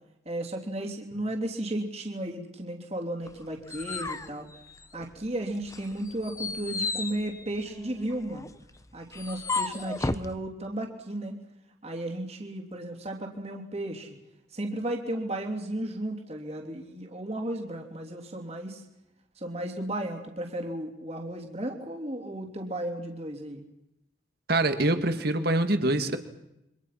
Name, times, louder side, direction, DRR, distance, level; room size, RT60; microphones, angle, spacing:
voice 1, 0.2-4.5 4.9-8.5 8.9-11.3 11.8-14.2 14.5-18.8 19.4-23.6, right 1 dB, 35° right, 1 dB, 3.2 m, -34 dB
sound 1, 3.3-5.3 5.7-10.3, left 3 dB, 15° left, 0.9 m, -34 dB
voice 2, 24.5-26.2, right 2 dB, 55° right, 8 dB, 2.2 m, -24 dB
28.0 x 25.0 x 5.9 m, 0.87 s
head